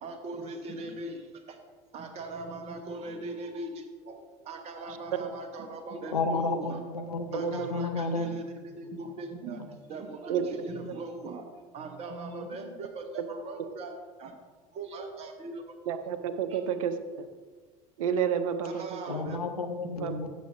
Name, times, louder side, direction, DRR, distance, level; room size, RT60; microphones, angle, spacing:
voice 1, 0.0-1.6 1.9-6.8 7.3-8.4 8.8-9.6 9.9-11.4 11.7-14.3 14.7-15.8 16.5-16.6 18.6-19.4, right 2 dB, 35° right, 5 dB, 1.0 m, -40 dB
voice 2, 6.1-8.5 8.8-9.1 9.5-9.8 18.7-20.3, left 3 dB, 80° left, 5 dB, 0.7 m, -32 dB
voice 3, 7.3-7.7 10.3-10.4 15.9-17.3 18.0-19.0 20.0-20.1, right 7 dB, 60° right, 10 dB, 0.7 m, -30 dB
14.5 x 7.1 x 2.6 m, 1.5 s
figure-of-eight pair, 70°, 19 cm